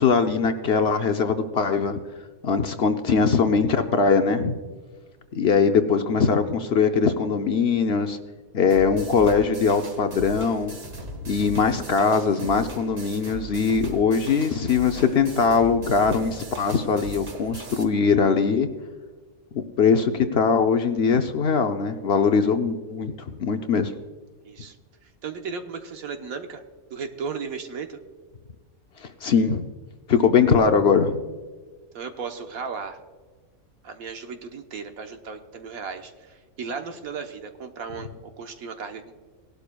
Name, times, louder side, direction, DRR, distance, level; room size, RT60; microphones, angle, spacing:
voice 1, 0.0-2.0 2.4-4.5 5.3-8.2 8.5-10.7 11.3-18.7 19.5-23.9 29.0-29.7 30.1-31.2, left 5 dB, 60° left, 7 dB, 0.8 m, -21 dB
sound 1, 8.7-17.8, right 1 dB, 45° right, 1.7 m, -39 dB
voice 2, 24.4-24.8 25.2-26.6 26.9-28.0 31.9-33.0 33.8-38.1 38.4-39.1, right 5 dB, 80° right, 6 dB, 1.4 m, -35 dB
18.5 x 11.5 x 2.3 m, 1.4 s
omnidirectional pair, 1.5 m